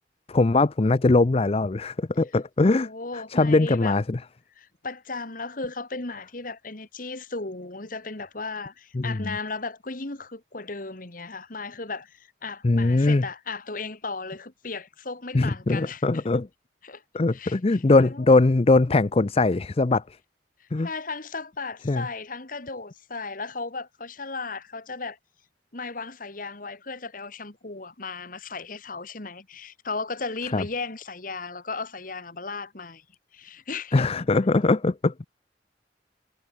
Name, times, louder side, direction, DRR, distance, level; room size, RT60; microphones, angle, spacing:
voice 1, 0.3-2.9 3.1-4.2 8.9-9.4 12.6-13.3 15.3-16.5 17.1-20.0 20.7-20.9 21.9-22.1 30.5-30.6 33.9-35.3, left 3 dB, 35° left, 0.5 m, -21 dB
voice 2, 2.6-4.0 4.6-16.3 16.8-17.0 17.3-18.3 20.6-25.2 25.7-33.0 33.3-34.1, left 3 dB, 50° left, 2.1 m, -36 dB
head